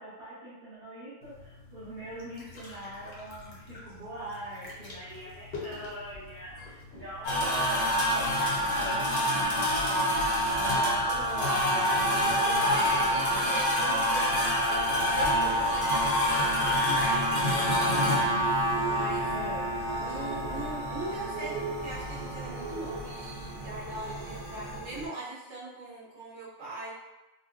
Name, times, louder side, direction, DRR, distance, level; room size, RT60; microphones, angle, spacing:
voice 1, 0.0-10.3 10.5-13.6 19.3-19.7, right 1 dB, 50° right, -13 dB, 1.2 m, -43 dB
sound 1, 1.2-7.9, left 3 dB, 55° left, 0.9 m, -46 dB
sound 2, 7.2-24.8, equal, 80° left, 1.1 m, -27 dB
voice 2, 12.7-18.3 18.9-19.3 20.0-26.9, right 2 dB, 75° right, -8 dB, 1.3 m, -41 dB
sound 3, 14.8-25.1, right 4 dB, 30° right, 1.1 m, -39 dB
4.0 x 2.1 x 2.4 m, 1.0 s
omnidirectional pair, 1.3 m